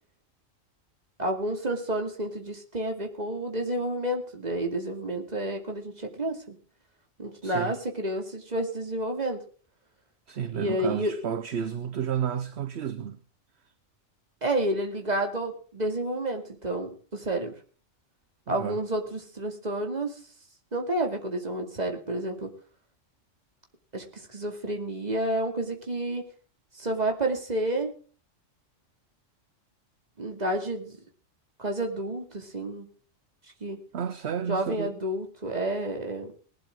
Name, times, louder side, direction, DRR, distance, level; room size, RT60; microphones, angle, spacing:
voice 1, 1.2-6.6 7.2-9.4 10.5-11.1 14.4-17.5 18.5-20.2 20.7-22.5 23.9-26.3 26.7-28.0 30.2-31.0 31.6-32.9 33.6-33.8 34.5-36.4, right 1 dB, 35° right, 2.5 m, -30 dB
voice 2, 7.4-7.8 10.3-13.2 18.5-18.8 33.9-35.0, right 8 dB, 60° right, 1.1 m, -31 dB
19.5 x 12.0 x 3.7 m
omnidirectional pair, 1.3 m